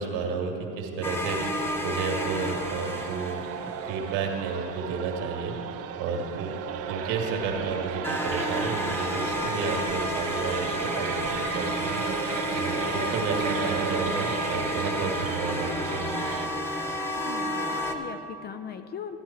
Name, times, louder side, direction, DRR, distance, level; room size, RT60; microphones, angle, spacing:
voice 1, 0.0-5.5 6.0-6.5 6.9-12.0 12.5-16.5, right 5 dB, 75° right, 2 dB, 1.9 m, -32 dB
sound 1, 1.0-3.8 8.0-17.9, left 1 dB, 5° left, 0.8 m, -30 dB
sound 2, 1.3-16.5, right 9 dB, 45° right, 0.6 m, -35 dB
voice 2, 17.2-19.2, left 7 dB, 30° left, 10 dB, 0.4 m, -39 dB
13.5 x 10.5 x 4.4 m, 2.9 s
supercardioid pair, 115°, 36 cm